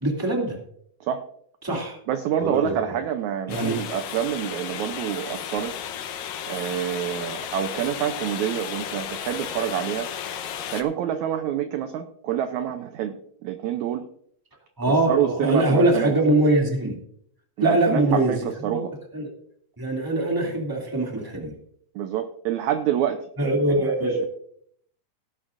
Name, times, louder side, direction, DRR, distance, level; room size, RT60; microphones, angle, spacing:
voice 1, 0.0-0.6 1.6-2.0 2.4-3.0 3.5-3.8 14.8-17.0 17.6-18.8 19.1-19.3 19.8-21.5 23.4-24.3, right 1 dB, 5° right, 0 dB, 1.9 m, -23 dB
voice 2, 2.1-5.7 6.5-10.1 10.7-14.1 14.9-16.1 17.6-18.9 22.0-23.3 23.8-24.3, right 10 dB, 75° right, 8 dB, 1.8 m, -27 dB
sound 1, 3.5-10.8, left 9 dB, 80° left, 2.6 m, -34 dB
17.5 x 11.0 x 2.6 m, 0.64 s
omnidirectional pair, 3.9 m